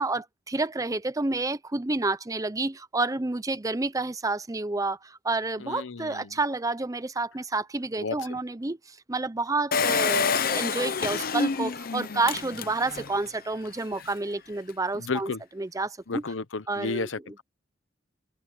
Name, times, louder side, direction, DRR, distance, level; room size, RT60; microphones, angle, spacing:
voice 1, 0.0-15.3 15.6-16.2 16.7-17.1, right 3 dB, 20° right, 0.7 m, -29 dB
voice 2, 5.6-6.4 8.0-8.4 14.0-14.1 14.9-15.4 16.1-17.4, left 4 dB, 85° left, 0.9 m, -33 dB
Engine, 9.7-13.2 13.6-13.7 13.9-14.0, left 5 dB, 50° left, 0.8 m, -27 dB
open air
head